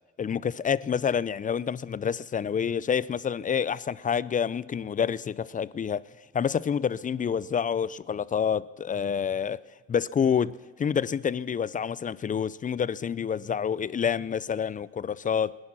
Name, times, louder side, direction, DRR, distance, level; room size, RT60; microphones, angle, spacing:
voice 1, 0.2-6.1 6.3-9.6 9.9-10.5 10.8-15.6, left 7 dB, 25° left, 0.4 m, -28 dB
19.5 x 10.5 x 6.0 m
cardioid pair, 90°, 30 cm